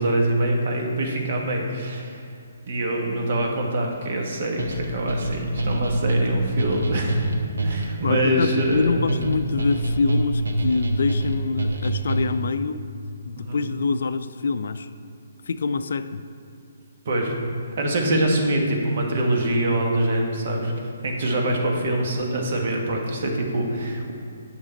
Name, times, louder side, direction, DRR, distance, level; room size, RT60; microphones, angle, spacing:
voice 1, 0.0-2.2 2.7-7.2 7.6-9.1 13.4-13.6 17.0-17.3 17.8-20.7 21.0-24.1, right 1 dB, 50° right, 1 dB, 1.4 m, -24 dB
sound 1, 4.6-12.5, right 1 dB, 75° right, 1.0 m, -26 dB
voice 2, 8.0-12.8 13.2-14.9 15.5-16.2, left 4 dB, 65° left, 12 dB, 0.4 m, -25 dB
8.9 x 6.0 x 4.2 m, 2.6 s
figure-of-eight pair, 135°, 0 cm